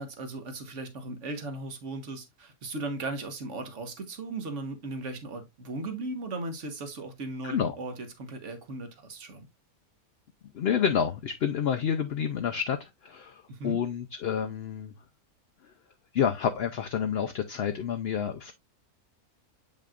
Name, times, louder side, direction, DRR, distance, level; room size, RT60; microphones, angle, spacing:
voice 1, 0.0-9.5 13.5-13.8, right 2 dB, 55° right, 1.5 m, -37 dB
voice 2, 7.4-7.7 10.5-14.9 16.1-18.5, left 8 dB, 60° left, 0.6 m, -29 dB
7.6 x 5.4 x 2.4 m
omnidirectional pair, 1.6 m